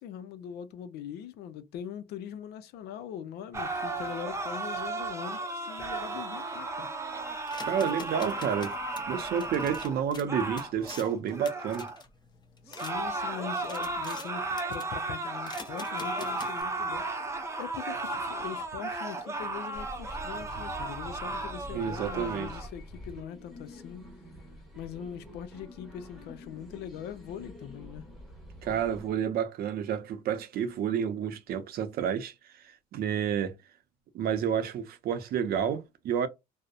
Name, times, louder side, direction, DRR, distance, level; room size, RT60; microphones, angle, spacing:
voice 1, 0.0-6.9 12.7-17.2 17.6-24.1 24.8-28.1, left 9 dB, 75° left, 0.5 m, -42 dB
sound 1, 3.5-12.0 12.7-22.7, right 2 dB, 15° right, 0.6 m, -35 dB
sound 2, 7.5-12.9 13.4-14.3 14.6-15.0 15.4-16.6, left 4 dB, 25° left, 0.6 m, -46 dB
voice 2, 7.6-8.7 9.1-11.9 21.7-22.5 28.6-32.3 32.9-33.6 34.1-36.3, right 8 dB, 65° right, 0.6 m, -30 dB
sound 3, 19.7-29.1, left 1 dB, ahead, 1.1 m, -46 dB
2.7 x 2.0 x 2.3 m
cardioid pair, 110°, 17 cm